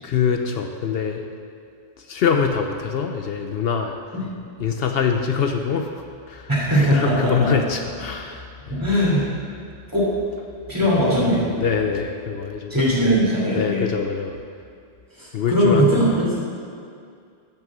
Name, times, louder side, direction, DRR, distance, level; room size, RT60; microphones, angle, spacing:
voice 1, 0.0-1.3 2.0-4.0 4.6-8.8 10.8-10.9 11.5-12.9 13.5-14.4 15.3-16.2, left 6 dB, 70° left, 5 dB, 0.9 m, -24 dB
voice 2, 6.5-7.5 8.7-9.3 9.9-10.1 10.7-11.6 12.7-13.8 15.1-16.4, equal, 20° right, -6 dB, 3.0 m, -20 dB
10.5 x 6.3 x 7.3 m, 2.3 s
omnidirectional pair, 1.1 m